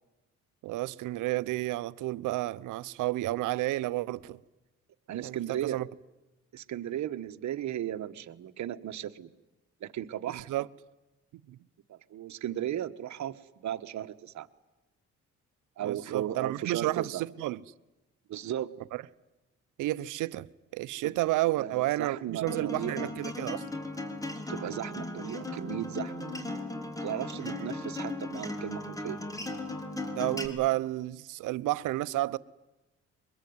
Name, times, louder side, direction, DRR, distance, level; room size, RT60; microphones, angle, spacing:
voice 1, 0.6-4.4 5.2-5.9 10.3-10.7 11.5-11.6 15.8-17.6 18.9-19.0 19.8-20.5 20.7-23.6 27.4-27.7 30.2-32.4, right 17 dB, 90° right, 0.8 m, -31 dB
voice 2, 5.1-5.8 6.5-9.3 9.8-10.5 11.9-14.5 15.8-17.2 18.3-18.7 21.0-21.1 21.6-23.1 24.5-26.3 27.0-29.2, right 11 dB, 65° right, 1.3 m, -36 dB
Acoustic guitar, 22.5-30.5, left 2 dB, 10° left, 3.9 m, -37 dB
23.0 x 21.5 x 9.5 m
cardioid pair, 90°, 30 cm